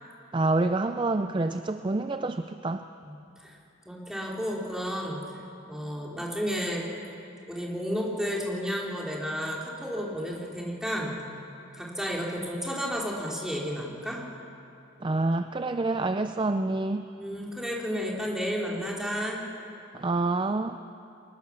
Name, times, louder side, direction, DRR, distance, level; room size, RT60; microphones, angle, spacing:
voice 1, 0.3-2.9 15.0-17.1 19.9-20.8, right 2 dB, 25° right, 9 dB, 0.4 m, -27 dB
voice 2, 3.8-5.3 5.7-6.9 7.5-11.2 11.7-14.2 17.2-19.4, equal, 5° right, -3 dB, 3.0 m, -32 dB
22.5 x 20.0 x 7.1 m, 2.8 s
head